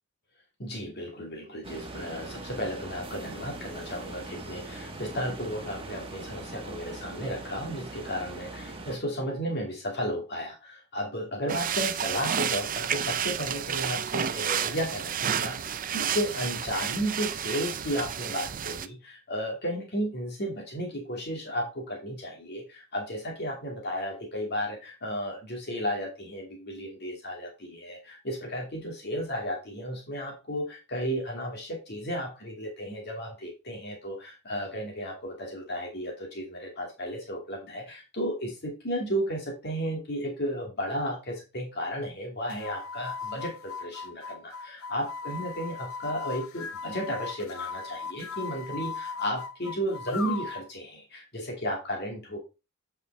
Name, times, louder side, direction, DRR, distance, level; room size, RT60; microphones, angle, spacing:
voice 1, 0.6-52.4, equal, 50° left, 0 dB, 2.4 m, -34 dB
sound 1, 1.6-9.0, right 2 dB, 25° right, 1.6 m, -41 dB
sound 2, 11.5-18.9, right 8 dB, 40° right, 0.5 m, -31 dB
sound 3, 42.5-50.7, left 5 dB, 70° left, 0.8 m, -38 dB
8.7 x 5.8 x 3.5 m, 0.29 s
head